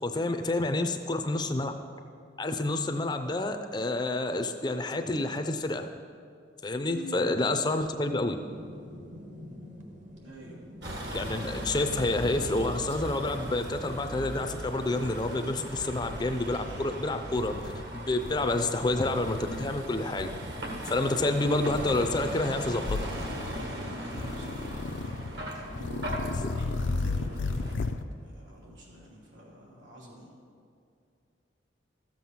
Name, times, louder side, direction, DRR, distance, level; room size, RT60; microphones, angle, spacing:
voice 1, 0.0-1.7 2.4-5.9 6.6-8.4 11.1-17.6 17.9-20.3 20.8-23.0 26.3-26.5, left 2 dB, 20° left, 7 dB, 0.5 m, -29 dB
voice 2, 6.9-7.2 10.2-10.6 23.8-24.7 25.7-27.9 28.2-30.3, right 1 dB, 80° right, -4 dB, 2.8 m, -46 dB
sound 1, 8.3-16.2, left 1 dB, 40° right, 1.0 m, -47 dB
Vehicle, 10.8-27.8, equal, 60° right, 1.6 m, -38 dB
sound 2, 14.8-16.0 16.4-16.8 17.3-17.8 18.2-19.8 20.1-20.6 21.7-22.5 22.8-23.7 24.1-25.3 25.7-28.0, left 3 dB, 75° left, 0.5 m, -35 dB
13.5 x 7.7 x 5.6 m, 2.4 s
head